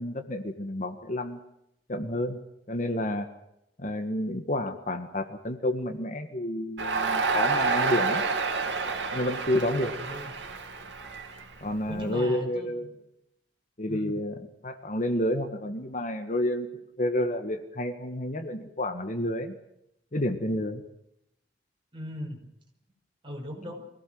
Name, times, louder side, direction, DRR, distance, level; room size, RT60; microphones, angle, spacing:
voice 1, 0.0-1.4 1.9-2.4 2.7-3.3 3.8-8.2 9.1-10.0 11.6-12.9 13.8-14.4 14.6-16.7 17.0-19.5 20.1-20.8, left 1 dB, 45° left, 7 dB, 1.7 m, -30 dB
Crowd, 6.8-12.0, right 4 dB, 80° right, 2.6 m, -29 dB
voice 2, 9.9-10.3 11.9-12.7 13.9-14.1 21.9-22.4 23.2-23.8, equal, 30° right, 1 dB, 5.9 m, -38 dB
24.0 x 17.5 x 7.8 m, 0.81 s
head